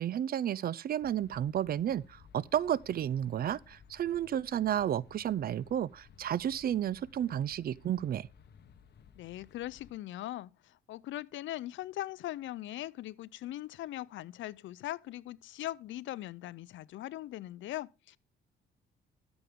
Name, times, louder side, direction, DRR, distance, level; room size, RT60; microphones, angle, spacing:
voice 1, 0.0-8.3, right 10 dB, 50° right, 0.4 m, -32 dB
sound 1, 1.0-9.9, left 7 dB, 55° left, 1.1 m, -59 dB
voice 2, 9.2-18.2, left 14 dB, 70° left, 0.5 m, -40 dB
12.5 x 7.2 x 3.6 m
cardioid pair, 90°, 20 cm